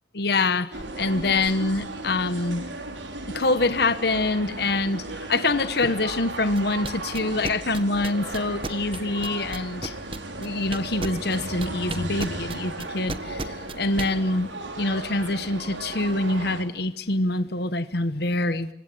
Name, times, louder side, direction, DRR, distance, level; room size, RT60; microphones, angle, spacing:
voice 1, 0.1-2.6 3.3-10.0 10.4-18.7, left 2 dB, 55° left, 12 dB, 1.1 m, -25 dB
sound 1, 0.7-16.6, right 2 dB, 75° right, 4.9 m, -35 dB
sound 2, 6.5-14.1, right 2 dB, 30° right, 1.4 m, -32 dB
28.5 x 24.5 x 7.7 m, 0.69 s
head